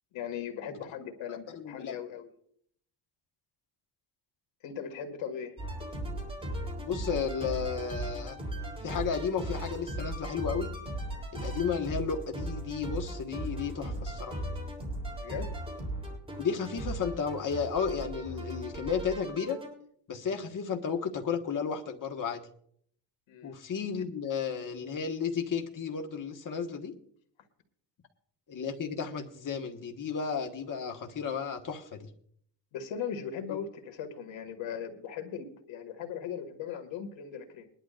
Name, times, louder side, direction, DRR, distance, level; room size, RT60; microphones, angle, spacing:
voice 1, 0.1-2.3 4.6-5.5 15.2-15.5 23.3-23.5 32.7-37.7, left 8 dB, 90° left, 6 dB, 2.2 m, -38 dB
voice 2, 1.3-2.0 6.8-8.4 8.8-10.7 11.3-14.4 16.4-19.6 20.1-22.4 23.4-26.9 28.5-32.1 33.5-33.6, left 6 dB, 45° left, 3 dB, 1.6 m, -33 dB
sound 1, 5.6-19.7, right 1 dB, 10° right, 3.6 m, -37 dB
22.0 x 11.5 x 2.6 m, 0.65 s
cardioid pair, 130°, 44 cm